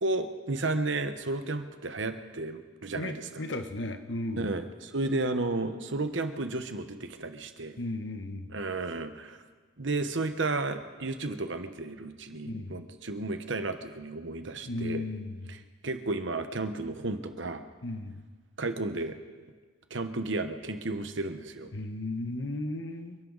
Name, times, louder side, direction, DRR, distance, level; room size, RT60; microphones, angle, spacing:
voice 1, 0.0-3.3 4.4-7.8 8.5-9.4 9.8-15.0 15.8-17.6 18.6-19.2 19.9-21.7, right 2 dB, 65° right, 8 dB, 1.1 m, -33 dB
voice 2, 2.9-4.5 7.8-8.6 12.4-12.8 14.7-15.6 17.8-18.2 21.7-23.2, left 2 dB, 60° left, 7 dB, 1.2 m, -35 dB
29.0 x 11.0 x 4.1 m, 1.5 s
head